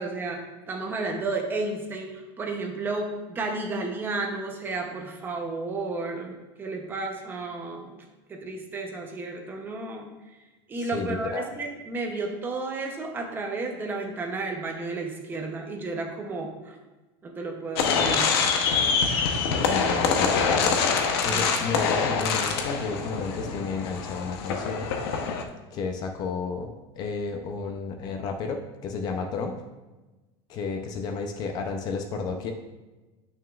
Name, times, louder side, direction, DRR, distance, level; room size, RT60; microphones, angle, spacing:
voice 1, 0.0-8.0 8.3-10.1 10.7-16.8 17.2-18.5 21.2-21.5, right 3 dB, 15° right, 2 dB, 0.7 m, -32 dB
voice 2, 10.8-11.4 19.6-20.9 21.2-24.9 25.7-29.6 30.5-32.5, left 4 dB, 30° left, 5 dB, 0.5 m, -32 dB
sound 1, 17.7-25.4, left 5 dB, 75° left, 0.8 m, -25 dB
9.0 x 6.1 x 2.4 m, 1.1 s
supercardioid pair, 170°, 13 cm